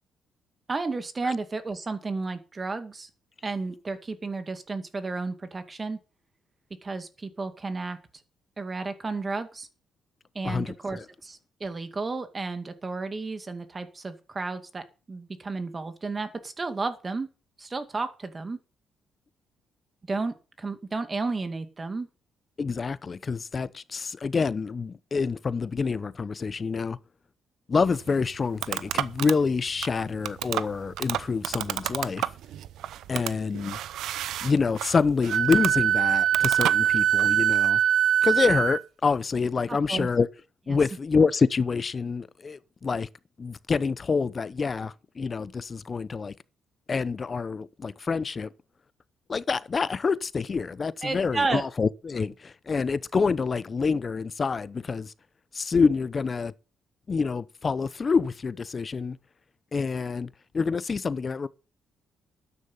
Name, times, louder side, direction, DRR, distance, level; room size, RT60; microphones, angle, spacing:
voice 1, 0.7-3.1 3.4-6.0 6.8-8.0 8.6-9.7 10.3-17.3 17.6-18.6 20.1-22.1 39.7-40.1 40.7-40.8 51.0-51.6, right 3 dB, 30° right, 2.2 m, -32 dB
voice 2, 10.4-11.0 22.6-27.0 27.7-32.3 33.1-33.8 34.4-37.8 38.2-40.3 40.7-43.1 43.4-46.3 46.9-48.5 49.3-55.1 55.5-56.5 57.1-59.2 59.7-61.5, left 5 dB, 35° left, 0.8 m, -27 dB
sound 1, 27.8-37.3, right 12 dB, 80° right, 0.7 m, -33 dB
Wind instrument woodwind instrument, 35.3-38.8, right 10 dB, 60° right, 1.0 m, -22 dB
12.5 x 9.7 x 5.6 m
cardioid pair, 90°, 0 cm